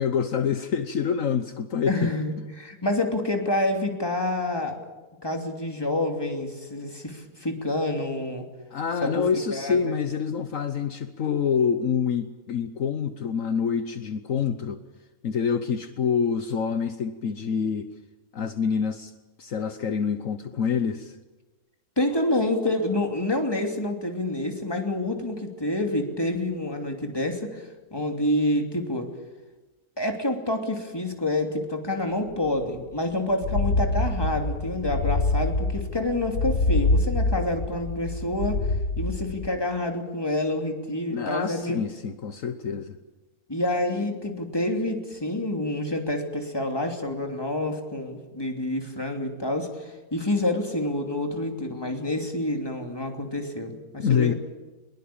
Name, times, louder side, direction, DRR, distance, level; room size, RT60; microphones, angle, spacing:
voice 1, 0.0-2.1 8.7-14.8 15.2-17.9 18.3-19.1 19.4-21.2 41.1-43.0 54.0-54.3, left 7 dB, 65° left, 9 dB, 1.4 m, -26 dB
voice 2, 1.9-4.8 5.2-8.4 9.0-9.3 9.5-9.9 22.0-29.1 30.0-38.7 39.0-41.9 43.5-54.3, left 1 dB, 15° left, 3 dB, 3.0 m, -28 dB
sound 1, 32.4-32.5 32.8-32.9 33.3-39.5, left 2 dB, 80° left, 2.1 m, -25 dB
22.0 x 21.5 x 8.7 m, 1.2 s
omnidirectional pair, 1.5 m